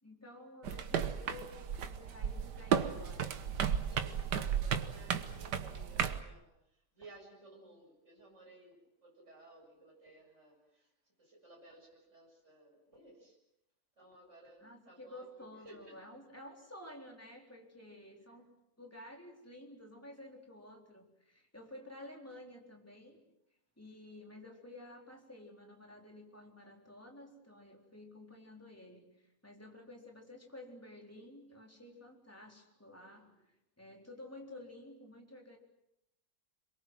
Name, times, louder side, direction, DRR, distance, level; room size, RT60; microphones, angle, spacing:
voice 1, 0.0-3.3 14.6-18.5 18.8-23.2 23.8-29.1 29.4-33.3 33.8-35.6, left 1 dB, 10° left, 1 dB, 3.9 m, -52 dB
sound 1, 0.6-6.2, right 8 dB, 90° right, 1.8 m, -34 dB
voice 2, 3.8-13.4 14.0-16.1 33.0-33.3, right 2 dB, 45° right, -1 dB, 7.8 m, -58 dB
27.0 x 23.0 x 7.7 m, 0.84 s
omnidirectional pair, 1.8 m